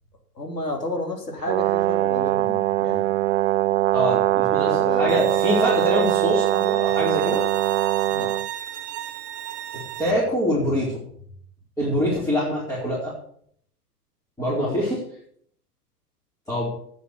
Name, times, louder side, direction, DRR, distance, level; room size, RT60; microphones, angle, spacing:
voice 1, 0.4-3.1 4.7-5.2 8.1-8.3 14.6-14.8, left 1 dB, 85° left, 3 dB, 3.7 m, -31 dB
Brass instrument, 1.5-8.5, right 15 dB, 50° right, 0.4 m, -22 dB
voice 2, 3.9-7.4 10.0-11.0 11.8-13.1 14.4-15.0 16.5-16.7, equal, 5° left, -7 dB, 4.6 m, -24 dB
Bowed string instrument, 5.1-10.1, right 12 dB, 35° right, 1.4 m, -34 dB
10.0 x 9.3 x 8.3 m, 0.64 s
figure-of-eight pair, 100°, 47 cm